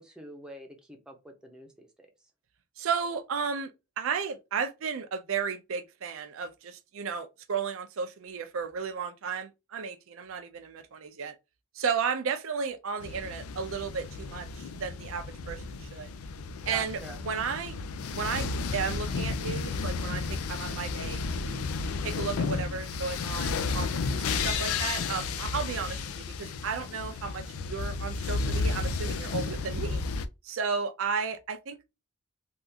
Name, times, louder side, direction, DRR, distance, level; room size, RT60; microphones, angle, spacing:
voice 1, 0.0-2.1 16.7-17.2, right 1 dB, 5° right, 0.6 m, -45 dB
voice 2, 2.8-3.7 4.0-11.4 11.7-16.1 16.7-17.9 18.1-21.7 22.0-30.0 30.4-31.8, right 6 dB, 70° right, 0.5 m, -34 dB
sound 1, 13.0-30.3, left 4 dB, 90° left, 0.4 m, -32 dB
3.5 x 2.4 x 2.7 m
head